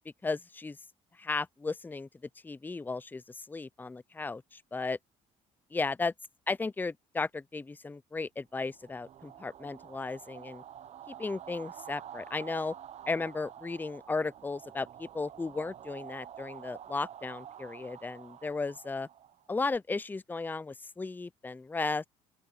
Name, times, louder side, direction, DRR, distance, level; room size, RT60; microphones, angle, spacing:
voice 1, 0.2-0.8 1.2-2.1 2.4-5.0 5.7-6.1 6.5-10.6 11.1-12.7 13.1-19.1 19.5-22.1, left 3 dB, 15° left, 0.5 m, -35 dB
sound 1, 8.6-19.8, right 10 dB, 50° right, 0.9 m, -49 dB
open air
cardioid pair, 95°, 14 cm